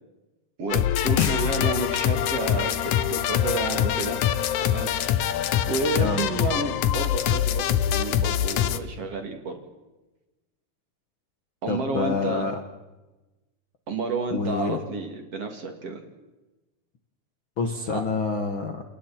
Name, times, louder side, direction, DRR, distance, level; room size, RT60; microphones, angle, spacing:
voice 1, 0.6-4.2 4.7-4.9 5.7-9.6 11.6-12.5 13.9-16.0 17.9-18.0, right 3 dB, 45° right, 4 dB, 3.6 m, -30 dB
sound 1, 0.7-8.8, left 10 dB, 70° left, 2.2 m, -24 dB
voice 2, 11.7-12.6 14.3-14.8 17.6-18.8, left 4 dB, 50° left, 4 dB, 1.7 m, -27 dB
29.5 x 29.5 x 4.5 m, 1.1 s
omnidirectional pair, 4.1 m